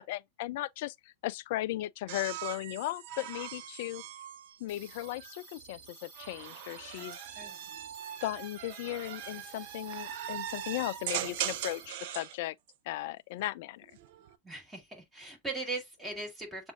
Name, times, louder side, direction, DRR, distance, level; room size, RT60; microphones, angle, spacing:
voice 1, 0.0-4.0 4.6-7.2 8.2-12.6 12.9-14.0, left 16 dB, 55° left, 0.3 m, -37 dB
sound 1, 2.1-5.3 6.1-12.4 13.8-14.3, right 11 dB, 55° right, 0.6 m, -40 dB
sound 2, 4.7-11.9, right 5 dB, 40° right, 1.6 m, -53 dB
voice 2, 14.4-16.7, right 3 dB, 10° right, 2.2 m, -39 dB
7.1 x 2.6 x 2.6 m
hypercardioid pair, 105°, 0 cm